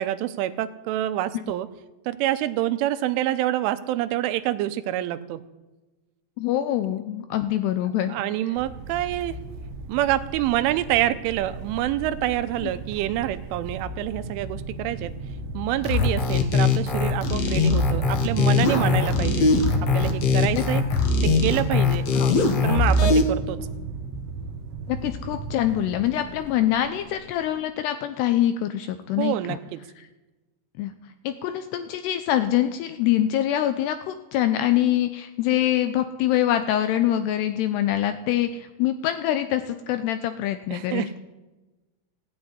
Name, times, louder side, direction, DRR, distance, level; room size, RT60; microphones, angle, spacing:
voice 1, 0.0-1.7 2.1-5.4 8.1-9.4 9.9-15.1 15.5-19.5 19.8-20.8 21.2-22.0 22.6-23.7 29.2-29.8 40.7-41.2, right 13 dB, 90° right, 11 dB, 3.3 m, -26 dB
voice 2, 6.4-8.1 20.5-20.6 22.1-22.3 24.9-29.6 30.8-30.9 31.2-41.2, left 12 dB, 80° left, 9 dB, 2.5 m, -24 dB
sound 1, 8.6-27.6, right 4 dB, 60° right, 2.3 m, -34 dB
sound 2, 15.8-23.2, left 4 dB, 60° left, 1.8 m, -21 dB
16.0 x 8.8 x 9.7 m, 1.1 s
omnidirectional pair, 5.5 m